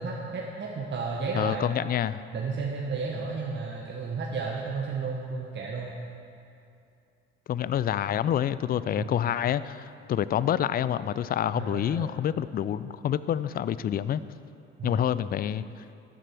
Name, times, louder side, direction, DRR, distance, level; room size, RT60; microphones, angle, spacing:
voice 1, 0.0-1.7 2.3-5.9 9.0-9.2 11.5-12.1 14.8-15.0, right 4 dB, 35° right, -2 dB, 1.2 m, -33 dB
voice 2, 1.3-2.2 7.5-14.2 14.8-15.6, left 10 dB, 30° left, 16 dB, 0.4 m, -27 dB
12.5 x 7.6 x 4.5 m, 2.6 s
hypercardioid pair, 60°, 32 cm